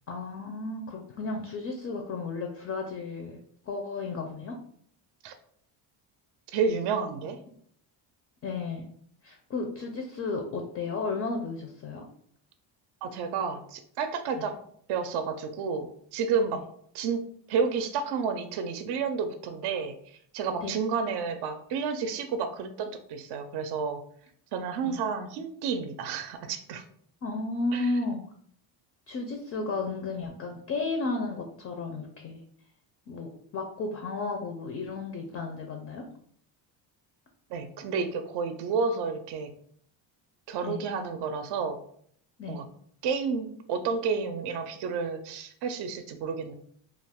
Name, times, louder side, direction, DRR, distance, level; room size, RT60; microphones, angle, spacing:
voice 1, 0.1-3.4 3.7-4.6 8.4-8.8 9.2-12.1 14.3-14.4 16.5-16.6 20.6-20.8 24.8-25.0 27.2-28.2 29.1-32.4 33.1-36.0 40.6-40.8 42.4-42.6, left 3 dB, 35° left, 3 dB, 0.4 m, -33 dB
voice 2, 6.5-7.4 13.0-14.5 14.9-15.9 16.1-16.6 16.9-17.2 17.5-24.0 24.5-26.8 27.7-27.9 37.5-39.5 40.5-41.8 42.5-42.7 43.0-46.5, right 5 dB, 65° right, 8 dB, 0.5 m, -30 dB
2.4 x 2.3 x 3.4 m, 0.63 s
cardioid pair, 125°, 44 cm